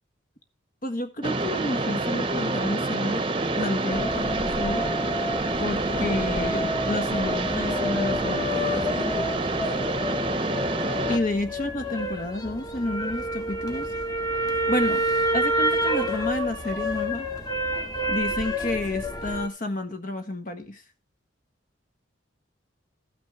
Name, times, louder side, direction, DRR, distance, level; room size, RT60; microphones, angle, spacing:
voice 1, 0.8-3.3 3.6-4.9 5.6-9.1 11.1-13.9 14.7-15.0 15.3-17.3 18.1-20.8, left 1 dB, 45° left, 1.6 m, -30 dB
Mechanisms, 1.2-11.2, right 2 dB, 25° right, 1.0 m, -27 dB
sound 1, 3.9-19.5, equal, 20° left, 1.5 m, -29 dB
14.5 x 5.8 x 6.0 m
head